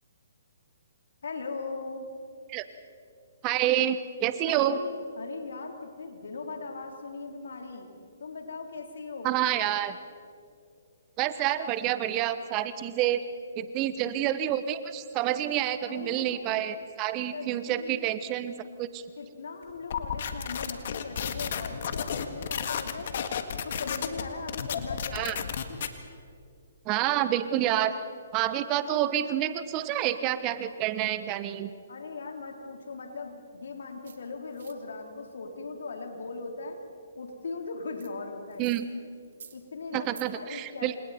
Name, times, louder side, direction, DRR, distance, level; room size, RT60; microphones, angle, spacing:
voice 1, 1.2-2.1 4.4-7.9 8.2-9.3 15.9-16.5 17.3-18.1 19.2-23.1 23.6-25.4 31.9-36.8 37.2-38.6 39.5-40.1 40.3-41.0, left 4 dB, 70° left, 3 dB, 3.8 m, -39 dB
voice 2, 3.4-4.8 9.2-10.0 11.2-13.2 13.6-19.0 25.1-25.4 26.8-27.9 28.3-31.7 38.6-38.8 39.9-40.9, right 12 dB, 30° right, 12 dB, 1.0 m, -28 dB
sound 1, 19.9-25.9, left 7 dB, 55° left, 1.8 m, -32 dB
sound 2, 34.0-34.2 34.5-34.7 38.0-38.1 38.5-38.8 39.2-39.6 40.0-40.2, right 7 dB, 65° right, 2.3 m, -48 dB
29.0 x 27.0 x 4.4 m, 2.3 s
hypercardioid pair, 135°, 0 cm